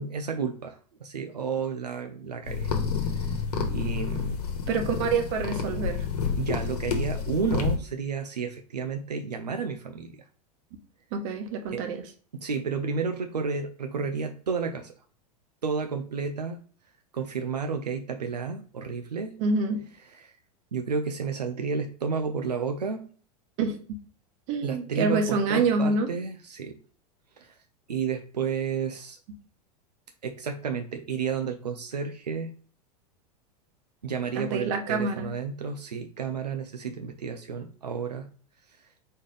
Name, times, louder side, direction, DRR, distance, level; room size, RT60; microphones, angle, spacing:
voice 1, 0.0-2.7 3.0-3.4 3.7-4.4 6.4-10.2 11.7-11.9 12.3-14.9 15.6-16.6 17.1-19.4 20.0-20.4 20.7-23.1 24.6-26.8 27.4-27.6 27.9-29.2 30.2-32.5 34.0-38.3 38.7-38.9, right 5 dB, 90° right, 5 dB, 0.5 m, -31 dB
sound 1, 2.5-7.8, left 6 dB, 75° left, 1.2 m, -29 dB
voice 2, 4.7-6.0 11.1-12.0 19.4-19.8 23.6-23.8 24.5-26.1 34.3-35.3, right 4 dB, 50° right, 6 dB, 1.1 m, -26 dB
4.3 x 3.6 x 3.3 m, 0.42 s
hypercardioid pair, 95°, 20 cm